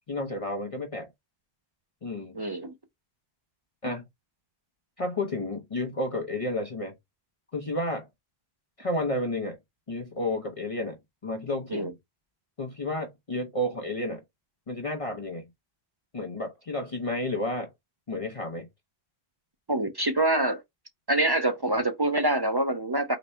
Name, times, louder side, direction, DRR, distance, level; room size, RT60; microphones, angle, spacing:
voice 1, 0.1-1.1 2.0-2.4 3.8-4.0 5.0-6.9 7.5-8.1 8.8-9.6 9.9-11.0 11.2-11.9 12.6-14.2 14.7-15.5 16.1-17.7 18.1-18.7, left 1 dB, 35° left, 0.7 m, -31 dB
voice 2, 2.3-2.7 11.7-11.9 19.7-20.6 21.1-23.2, right 1 dB, 40° right, 0.3 m, -25 dB
4.0 x 2.1 x 4.2 m
omnidirectional pair, 1.1 m